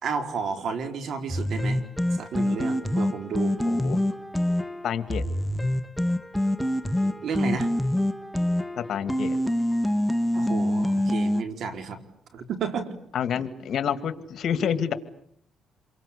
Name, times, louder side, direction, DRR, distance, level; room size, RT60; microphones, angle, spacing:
voice 1, 0.0-1.8 2.2-3.6 7.2-7.7 10.3-12.0 12.3-12.9, right 5 dB, 65° right, 8 dB, 4.3 m, -31 dB
sound 1, 1.3-11.4, left 1 dB, ahead, 1.2 m, -26 dB
voice 2, 3.7-4.0 4.8-5.2 8.8-9.4 13.1-14.9, left 8 dB, 65° left, 12 dB, 2.2 m, -28 dB
28.5 x 23.5 x 8.5 m, 0.66 s
cardioid pair, 90°, 0 cm